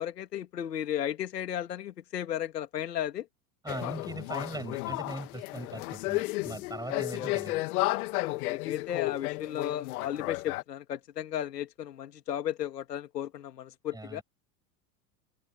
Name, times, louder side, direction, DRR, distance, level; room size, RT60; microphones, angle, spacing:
voice 1, 0.0-3.3 6.9-7.3 8.4-14.2, left 10 dB, 85° left, 2.8 m, -35 dB
voice 2, 3.6-7.6 13.9-14.2, right 2 dB, 10° right, 7.2 m, -40 dB
sound 1, 3.7-10.6, left 21 dB, 65° left, 2.2 m, -33 dB
open air
hypercardioid pair, 100°, 47 cm